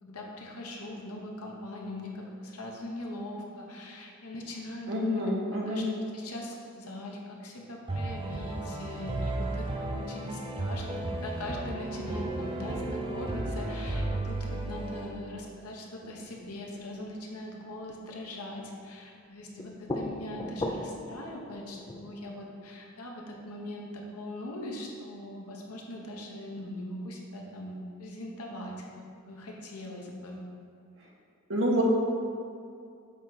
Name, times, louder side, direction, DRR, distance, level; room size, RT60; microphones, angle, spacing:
voice 1, 0.0-5.2 5.5-30.4, left 1 dB, 85° left, -1 dB, 1.0 m, -41 dB
voice 2, 4.9-5.8 31.5-31.8, equal, 60° right, -3 dB, 1.3 m, -27 dB
sound 1, 7.9-15.1, right 2 dB, 25° right, 0.6 m, -34 dB
sound 2, 16.0-18.0 19.4-22.3, left 1 dB, 20° left, 0.3 m, -39 dB
7.2 x 4.4 x 4.1 m, 2.4 s
head